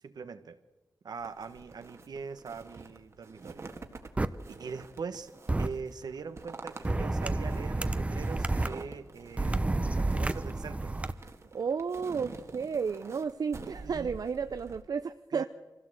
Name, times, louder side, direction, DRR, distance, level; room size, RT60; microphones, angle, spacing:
voice 1, 0.0-0.6 1.0-3.7 4.5-5.3 5.6-10.9 13.8-14.1 15.3-15.5, right 5 dB, 80° right, 10 dB, 1.4 m, -42 dB
sound 1, 1.2-14.8, right 3 dB, 45° right, 1.7 m, -48 dB
sound 2, 4.2-4.3 5.5-5.7 6.8-8.7 9.4-11.1, right 2 dB, 20° right, 0.7 m, -29 dB
voice 2, 11.5-15.5, right 6 dB, 65° right, 10 dB, 0.6 m, -32 dB
25.5 x 16.0 x 7.9 m, 1.2 s
wide cardioid pair, 145°, 7 cm